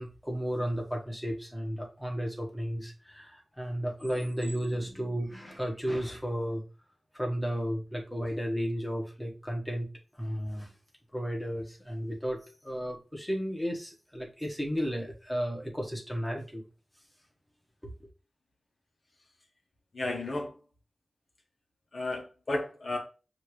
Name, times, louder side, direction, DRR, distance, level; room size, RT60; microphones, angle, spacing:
voice 1, 0.0-6.6 7.1-9.9 10.1-10.7 11.1-16.6 17.8-18.1, equal, ahead, -1 dB, 1.2 m, -33 dB
voice 2, 19.9-20.5 21.9-23.0, left 2 dB, 60° left, 1 dB, 1.0 m, -33 dB
6.6 x 2.5 x 3.1 m, 0.35 s
cardioid pair, 60°, 0 cm